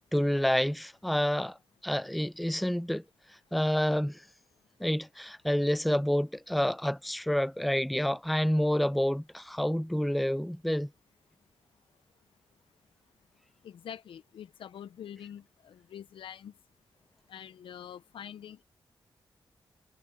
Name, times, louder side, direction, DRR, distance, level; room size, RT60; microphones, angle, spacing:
voice 1, 0.1-1.6 1.8-3.0 3.5-4.2 4.8-10.9, equal, ahead, 0.3 m, -28 dB
voice 2, 13.6-16.5 17.3-18.6, left 9 dB, 85° left, 0.9 m, -45 dB
cardioid pair, 55°, 9 cm